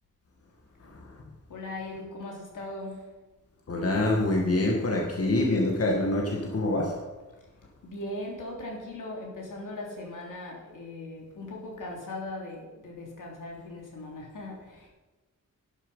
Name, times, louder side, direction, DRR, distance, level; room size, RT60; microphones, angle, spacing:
voice 1, 0.8-1.2 3.7-7.0, left 2 dB, 50° left, 1.9 m, -26 dB
voice 2, 1.5-3.1 7.8-14.9, left 2 dB, 90° left, 3.5 m, -39 dB
11.5 x 10.0 x 5.6 m
wide cardioid pair, 165°, 31 cm